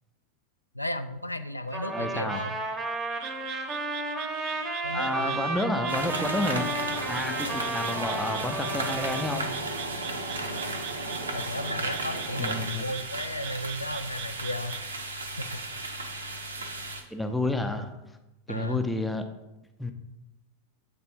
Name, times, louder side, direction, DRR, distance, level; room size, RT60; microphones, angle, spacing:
voice 1, 0.7-2.6 4.8-5.6 10.3-10.7 11.3-15.0 15.4-15.6 18.5-18.8, left 1 dB, 85° left, 9 dB, 0.3 m, -35 dB
Trumpet, 1.7-9.4, right 2 dB, 25° right, 0.9 m, -33 dB
voice 2, 1.9-2.4 4.9-9.5 12.4-12.9 17.1-17.9 18.5-19.2 19.8-19.9, left 2 dB, 5° left, 5 dB, 0.6 m, -30 dB
Frog, 3.1-14.9, right 11 dB, 45° right, 0.4 m, -43 dB
sound 1, 5.9-17.0, right 2 dB, 70° right, 0.7 m, -34 dB
7.8 x 3.4 x 4.4 m, 1.0 s
figure-of-eight pair, 90°, 0 cm